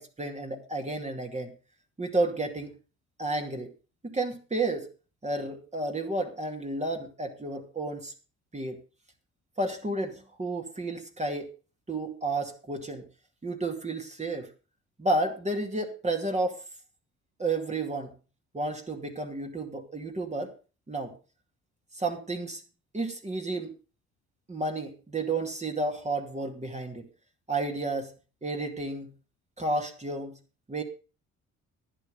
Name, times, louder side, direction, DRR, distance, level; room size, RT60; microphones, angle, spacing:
voice 1, 0.0-1.5 2.0-2.8 3.2-3.7 4.0-4.9 5.2-8.1 8.5-8.8 9.6-11.5 11.9-13.1 13.4-14.5 15.0-16.6 17.4-18.1 18.5-20.5 20.9-21.1 21.9-22.6 22.9-23.7 24.5-27.1 27.5-28.1 28.4-29.1 29.6-30.4 30.7-30.8, right 2 dB, 25° right, 4 dB, 2.3 m, -31 dB
11.5 x 9.6 x 5.2 m, 0.34 s
cardioid pair, 90°, 30 cm